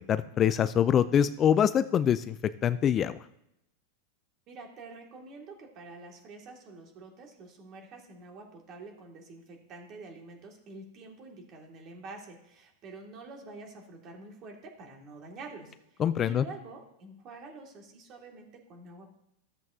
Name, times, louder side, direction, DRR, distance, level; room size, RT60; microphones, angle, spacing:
voice 1, 0.1-2.4 2.6-3.1 16.0-16.4, left 9 dB, 30° left, 14 dB, 0.3 m, -24 dB
voice 2, 4.5-19.1, right 3 dB, 40° right, 1 dB, 2.2 m, -47 dB
13.5 x 7.6 x 2.7 m, 0.79 s
hypercardioid pair, 125°, 0 cm